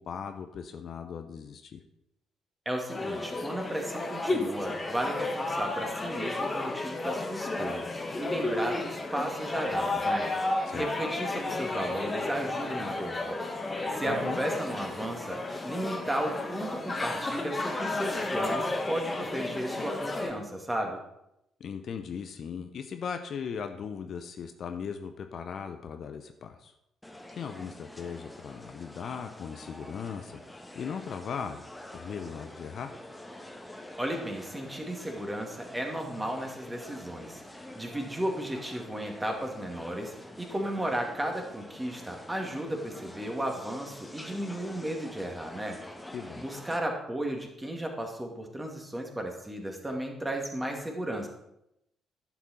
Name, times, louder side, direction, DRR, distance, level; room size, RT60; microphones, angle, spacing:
voice 1, 0.1-1.8 10.7-10.9 14.1-14.4 21.6-26.7 27.4-31.7 31.9-33.0 46.1-46.5, left 6 dB, 55° left, 7 dB, 0.7 m, -38 dB
voice 2, 2.7-7.9 8.2-10.3 10.7-13.5 14.0-21.0 34.0-37.4 37.8-45.8 46.4-51.3, right 1 dB, 15° right, 2 dB, 2.1 m, -34 dB
sound 1, 2.9-20.3, left 2 dB, 25° left, 1.5 m, -32 dB
sound 2, 27.0-46.8, left 1 dB, 10° left, 1.3 m, -46 dB
11.0 x 6.0 x 4.3 m, 0.83 s
figure-of-eight pair, 45°, 0 cm